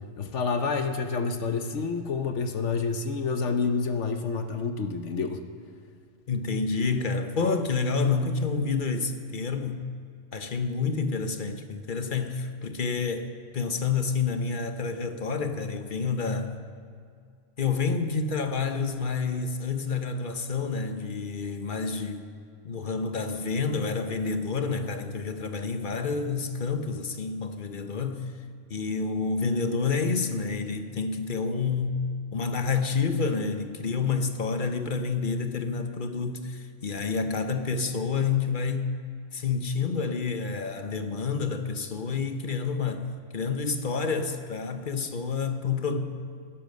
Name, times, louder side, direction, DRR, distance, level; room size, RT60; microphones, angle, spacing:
voice 1, 0.2-5.4, left 4 dB, 70° left, 1.2 m, -28 dB
voice 2, 6.3-9.8 10.3-16.6 17.6-22.3 22.6-28.3 28.7-32.0 32.3-38.9 39.3-43.1 43.3-46.0, left 4 dB, 45° left, 1.0 m, -29 dB
16.0 x 11.5 x 6.6 m
omnidirectional pair, 1.3 m